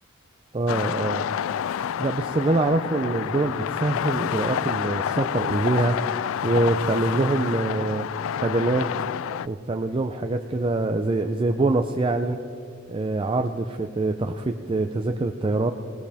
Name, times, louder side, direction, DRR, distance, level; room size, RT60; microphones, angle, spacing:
voice 1, 0.5-1.3 2.0-6.0 6.4-8.1 8.4-8.9 9.4-12.4 12.9-15.7, right 2 dB, 25° right, 5 dB, 0.5 m, -24 dB
sound 1, 0.7-9.5, left 9 dB, 70° left, 0.3 m, -28 dB
19.5 x 18.5 x 3.5 m, 2.4 s
head